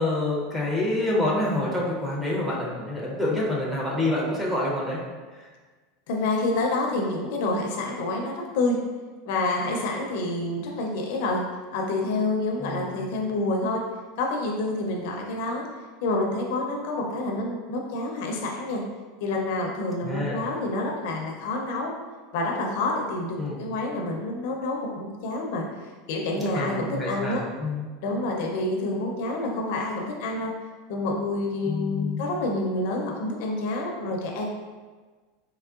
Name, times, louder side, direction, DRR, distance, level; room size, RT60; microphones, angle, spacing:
voice 1, 0.0-5.0 5.4-5.5 12.6-13.1 20.0-20.4 23.4-23.7 26.4-27.8 31.7-32.4, left 1 dB, 5° right, -6 dB, 0.6 m, -27 dB
voice 2, 6.1-8.8 9.2-11.4 11.7-13.9 14.2-15.7 16.0-18.8 19.2-21.9 22.3-27.4 28.0-30.5 30.9-34.5, left 2 dB, 60° left, 0 dB, 0.5 m, -28 dB
3.6 x 3.0 x 2.4 m, 1.4 s
supercardioid pair, 170°, 0 cm